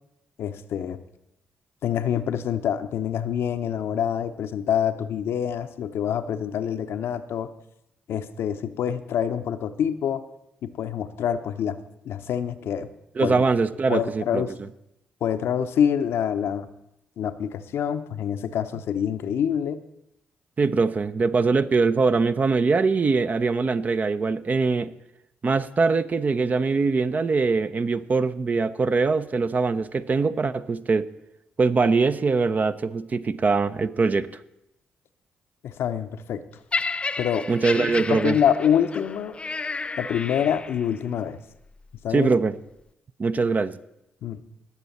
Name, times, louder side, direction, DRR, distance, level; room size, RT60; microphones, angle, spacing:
voice 1, 0.4-1.0 1.8-7.5 8.1-10.2 10.6-11.8 12.0-12.9 13.2-13.3 13.9-14.5 15.2-16.7 17.2-19.8 35.6-36.4 37.2-37.5 37.8-39.4 40.0-41.4 42.0-42.3 44.2-44.4, left 9 dB, 60° left, 10 dB, 0.7 m, -26 dB
voice 2, 13.2-14.4 20.6-24.9 25.4-31.1 31.6-34.3 37.5-38.4 42.1-42.6 43.2-43.7, right 4 dB, 35° right, 13 dB, 0.6 m, -22 dB
Laughter, 36.7-41.0 41.8-41.9, left 4 dB, 25° left, 0.3 m, -32 dB
19.0 x 7.0 x 4.2 m, 0.83 s
figure-of-eight pair, 40°, 5 cm